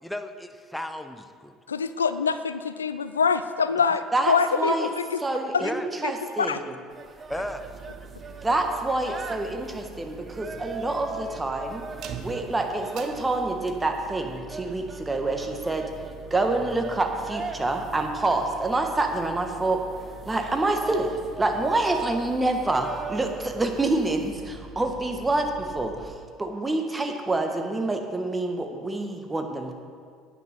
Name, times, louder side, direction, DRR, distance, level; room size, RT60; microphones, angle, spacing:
voice 1, 0.0-1.5 5.5-5.9 7.3-7.6, left 1 dB, 5° left, 8 dB, 0.9 m, -34 dB
voice 2, 1.7-5.2 5.5-5.7 6.4-6.6, left 6 dB, 90° left, 12 dB, 0.3 m, -25 dB
voice 3, 4.1-4.9 5.2-6.7 8.4-11.8 12.2-15.8 16.3-19.8 20.3-29.7, right 2 dB, 20° right, 4 dB, 1.5 m, -27 dB
sound 1, 6.9-24.3, right 4 dB, 35° right, 1.0 m, -41 dB
sound 2, 7.3-26.2, right 5 dB, 55° right, 0.9 m, -44 dB
9.1 x 9.0 x 5.9 m, 2.1 s
hypercardioid pair, 60°, 0 cm